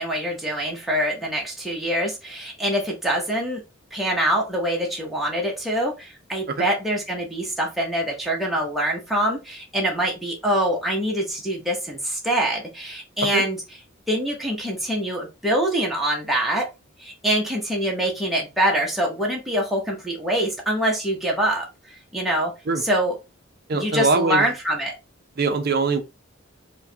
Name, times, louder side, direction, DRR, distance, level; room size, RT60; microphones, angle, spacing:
voice 1, 0.0-3.6 3.9-13.6 14.1-16.7 17.0-22.5 22.8-23.1 23.7-24.9, right 1 dB, ahead, 0.8 m, -24 dB
voice 2, 23.7-24.5 25.4-26.0, right 4 dB, 50° right, 0.6 m, -22 dB
4.5 x 2.2 x 2.7 m
head